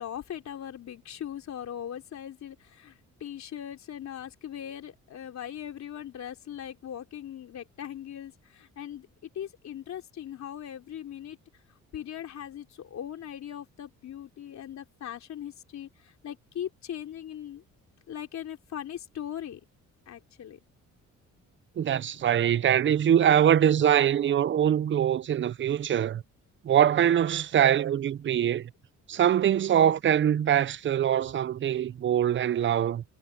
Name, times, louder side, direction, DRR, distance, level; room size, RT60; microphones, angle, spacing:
voice 1, 0.0-9.1 9.3-11.6 11.9-17.6 18.1-19.6 20.1-20.6, left 10 dB, 65° left, 3.5 m, -40 dB
voice 2, 21.8-26.2 26.6-28.7 29.1-33.0, right 10 dB, 40° right, 0.5 m, -23 dB
cardioid pair, 90°, 30 cm